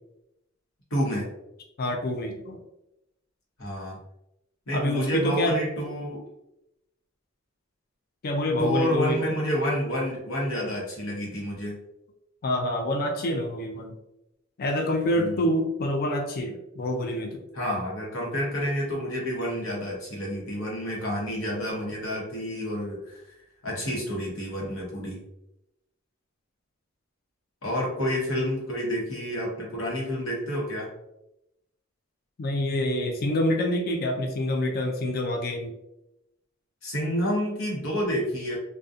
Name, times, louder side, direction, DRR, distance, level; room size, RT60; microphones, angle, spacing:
voice 1, 0.9-1.3 3.6-4.0 4.7-6.2 8.6-11.8 15.1-15.5 17.5-23.4 23.6-25.2 27.6-30.9 36.8-38.6, equal, 75° left, -3 dB, 0.9 m, -29 dB
voice 2, 1.8-2.6 4.7-5.6 8.2-9.3 12.4-13.9 14.6-17.4 32.4-35.7, left 1 dB, 45° left, 2 dB, 0.4 m, -27 dB
2.6 x 2.2 x 2.4 m, 0.87 s
head